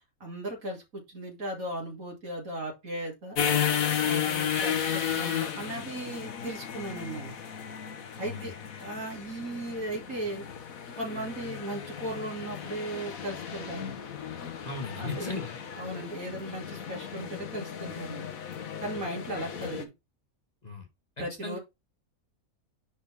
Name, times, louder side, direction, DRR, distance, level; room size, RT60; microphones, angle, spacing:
voice 1, 0.2-3.4 4.0-7.3 8.2-8.5 8.8-10.4 11.0-14.0 15.0-15.4 15.8-18.3 18.8-19.9 21.2-21.6, right 1 dB, 70° right, 3.3 m, -37 dB
sound 1, 3.4-19.9, left 8 dB, 70° left, 1.5 m, -34 dB
voice 2, 8.2-8.5 14.6-15.6 20.6-20.9 21.2-21.6, left 3 dB, 30° left, 1.6 m, -37 dB
10.0 x 4.0 x 3.5 m
omnidirectional pair, 1.5 m